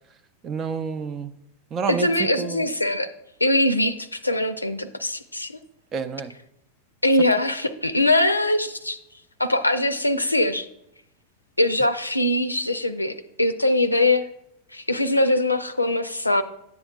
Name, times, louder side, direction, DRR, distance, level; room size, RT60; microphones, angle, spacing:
voice 1, 0.4-1.3 1.7-2.6 5.9-6.3, right 6 dB, 30° right, 12 dB, 0.5 m, -29 dB
voice 2, 1.9-3.1 3.4-5.6 7.0-9.0 9.4-10.7 11.6-14.2 14.7-16.4, left 1 dB, 85° left, 10 dB, 0.5 m, -22 dB
10.5 x 7.7 x 2.3 m, 0.80 s
figure-of-eight pair, 90°, 0 cm